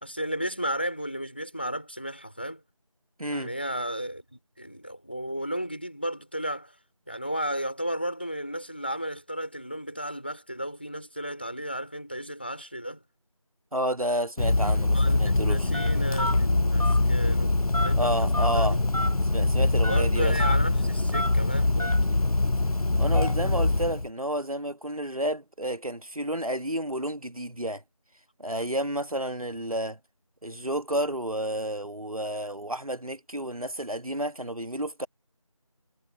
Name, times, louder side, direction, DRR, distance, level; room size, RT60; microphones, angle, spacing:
voice 1, 0.0-2.6 3.3-6.8 7.1-13.0 14.9-18.8 19.8-22.0, equal, 20° left, 3.7 m, -34 dB
voice 2, 3.2-3.5 13.7-15.7 18.0-18.8 19.3-20.3 23.0-27.8 28.4-30.0 30.4-35.1, right 1 dB, 75° right, 1.7 m, -30 dB
Telephone, 14.4-24.1, left 2 dB, 85° left, 0.8 m, -23 dB
figure-of-eight pair, 180°, 18 cm